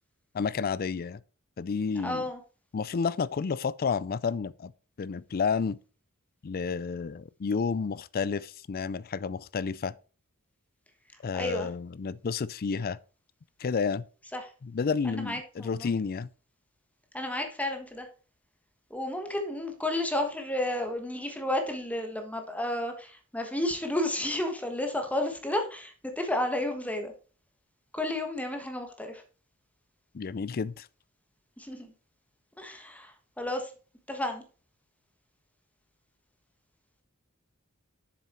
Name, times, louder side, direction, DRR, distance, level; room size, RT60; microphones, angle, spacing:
voice 1, 0.3-1.2 1.6-2.2 2.7-4.7 5.0-5.8 6.4-9.9 11.2-13.0 13.6-14.0 14.6-16.3 30.1-30.9, left 5 dB, 45° left, 0.4 m, -30 dB
voice 2, 2.0-2.4 11.3-11.7 14.3-14.5 15.0-15.9 17.1-18.1 18.9-27.1 27.9-29.2 31.6-31.9 32.6-33.7 34.1-34.4, left 1 dB, 5° left, 1.3 m, -32 dB
7.4 x 6.9 x 4.3 m
head